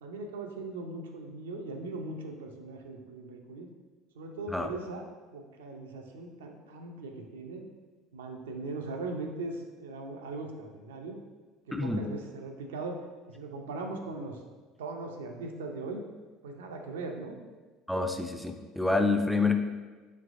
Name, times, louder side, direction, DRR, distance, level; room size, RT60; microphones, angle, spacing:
voice 1, 0.0-3.7 4.2-5.0 5.3-7.6 8.1-11.2 11.8-13.0 13.3-14.4 14.8-16.1 16.4-17.4, right 3 dB, 90° right, 3 dB, 0.4 m, -39 dB
voice 2, 11.7-12.0 17.9-19.6, left 3 dB, 5° left, 5 dB, 0.3 m, -27 dB
3.2 x 3.2 x 2.5 m, 1.3 s
hypercardioid pair, 80°, 0 cm